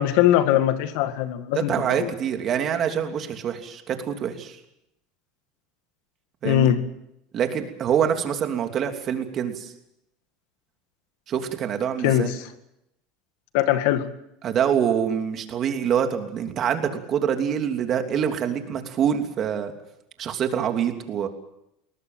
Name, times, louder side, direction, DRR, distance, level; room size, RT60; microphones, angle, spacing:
voice 1, 0.0-2.1 6.4-6.8 12.0-12.4 13.5-14.1, left 12 dB, 70° left, 10 dB, 1.9 m, -21 dB
voice 2, 1.5-4.6 6.4-6.7 7.3-9.7 11.3-12.3 14.4-19.7 20.2-21.3, right 8 dB, 40° right, 5 dB, 3.0 m, -25 dB
22.0 x 19.0 x 7.6 m, 0.82 s
supercardioid pair, 125°, 0 cm